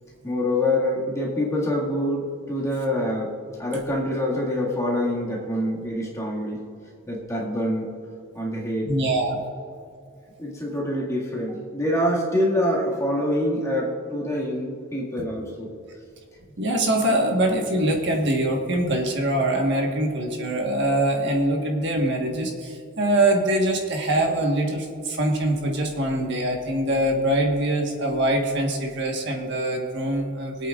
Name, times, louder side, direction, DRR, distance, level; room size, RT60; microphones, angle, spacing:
voice 1, 0.2-3.3 3.6-6.6 7.1-7.9 8.3-8.9 10.4-15.7, left 1 dB, 15° left, -5 dB, 1.9 m, -25 dB
voice 2, 8.9-9.4 16.6-30.7, right 1 dB, 55° right, 1 dB, 1.4 m, -23 dB
24.0 x 8.6 x 2.4 m, 2.3 s
head